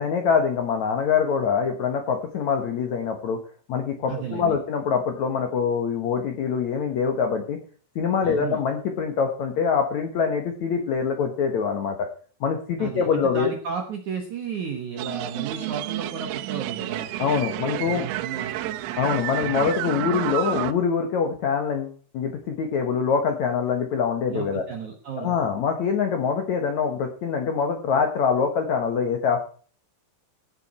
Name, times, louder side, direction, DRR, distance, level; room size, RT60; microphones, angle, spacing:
voice 1, 0.0-3.4 3.7-7.6 7.9-12.1 12.4-13.5 17.2-18.0 19.0-24.6 25.1-29.4, left 6 dB, 75° left, 5 dB, 1.7 m, -24 dB
voice 2, 4.1-4.6 8.2-8.6 12.8-17.1 17.6-18.8 19.4-19.7 24.3-25.4, right 6 dB, 65° right, 4 dB, 1.9 m, -33 dB
sound 1, 15.0-20.7, right 14 dB, 85° right, 3.4 m, -30 dB
16.0 x 7.9 x 4.4 m, 0.42 s
omnidirectional pair, 5.7 m